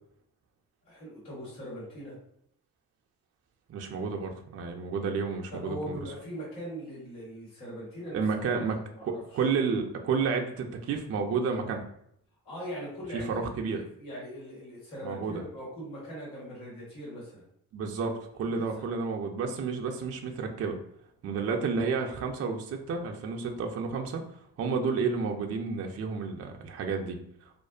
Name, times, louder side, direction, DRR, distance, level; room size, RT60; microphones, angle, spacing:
voice 1, 0.9-2.2 5.5-9.4 12.4-13.4 13.7-17.4 18.4-18.9, equal, 85° left, -6 dB, 1.4 m, -41 dB
voice 2, 3.7-6.0 8.1-11.8 13.1-13.8 15.0-15.4 17.7-20.8 21.2-24.2 24.6-27.2, right 5 dB, 35° right, 3 dB, 0.4 m, -31 dB
2.4 x 2.3 x 2.2 m, 0.71 s
hypercardioid pair, 50°, 44 cm